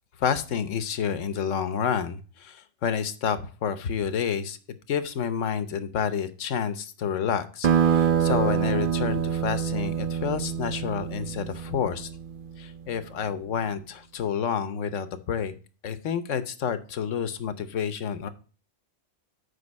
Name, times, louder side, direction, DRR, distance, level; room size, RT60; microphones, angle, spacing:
voice 1, 0.2-4.6 4.9-12.1 12.6-15.5 15.8-18.3, left 7 dB, 80° left, 11 dB, 1.2 m, -29 dB
sound 1, 7.6-12.8, right 8 dB, 55° right, 0.6 m, -26 dB
8.2 x 5.2 x 5.2 m, 0.38 s
omnidirectional pair, 1.3 m